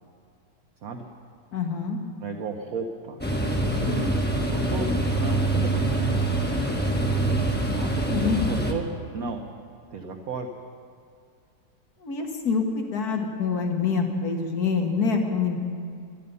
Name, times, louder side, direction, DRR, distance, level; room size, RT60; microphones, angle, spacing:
voice 1, 1.5-2.0 7.6-8.4 12.0-15.7, left 5 dB, 60° left, 3 dB, 2.0 m, -26 dB
voice 2, 2.2-4.1 4.5-4.9 5.2-5.8 7.7-8.9 9.1-9.4 9.9-10.5, right 4 dB, 55° right, 2 dB, 1.3 m, -34 dB
sound 1, 3.2-8.7, right 1 dB, 5° left, 1.1 m, -25 dB
19.0 x 12.5 x 5.5 m, 2.3 s
omnidirectional pair, 1.9 m